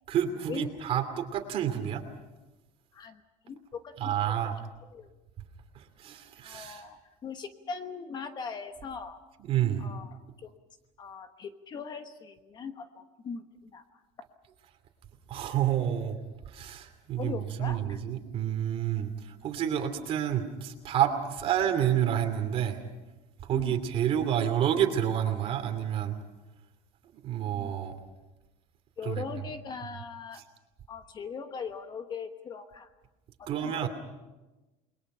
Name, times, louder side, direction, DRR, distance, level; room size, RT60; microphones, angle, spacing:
voice 1, 0.1-2.0 4.0-4.5 5.7-6.8 9.4-9.9 15.3-16.2 16.5-22.8 23.4-26.1 27.2-27.9 29.0-29.2 33.5-33.9, right 10 dB, 40° right, 7 dB, 2.7 m, -29 dB
voice 2, 2.9-4.4 4.9-5.1 6.4-9.2 9.8-10.6 11.0-14.0 17.2-18.0 23.5-23.8 27.6-27.8 29.0-30.4 30.9-32.9 33.4-33.9, left 5 dB, 30° left, 8 dB, 1.2 m, -40 dB
29.5 x 21.5 x 5.6 m, 1.1 s
cardioid pair, 160°, 14 cm